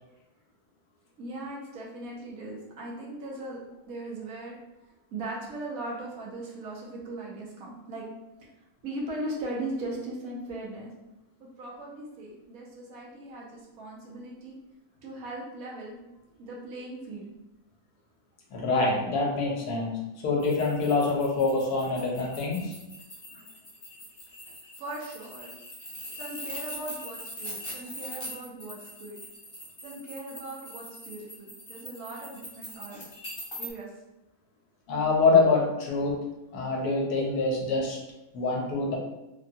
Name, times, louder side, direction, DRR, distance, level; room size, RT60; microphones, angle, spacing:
voice 1, 1.2-3.6 3.9-4.6 5.1-8.0 8.8-10.9 11.4-14.5 15.0-17.3 22.6-22.7 24.8-25.5 26.1-29.2 29.8-33.0 33.6-33.9, right 2 dB, 70° right, -3 dB, 1.2 m, -39 dB
voice 2, 18.5-20.0 20.2-22.7 34.9-36.2 36.5-38.0 38.3-39.0, left 3 dB, 90° left, -1 dB, 1.3 m, -25 dB
sound 1, 20.4-33.7, equal, 30° left, 0.5 m, -42 dB
3.4 x 2.2 x 2.7 m, 0.96 s
omnidirectional pair, 1.6 m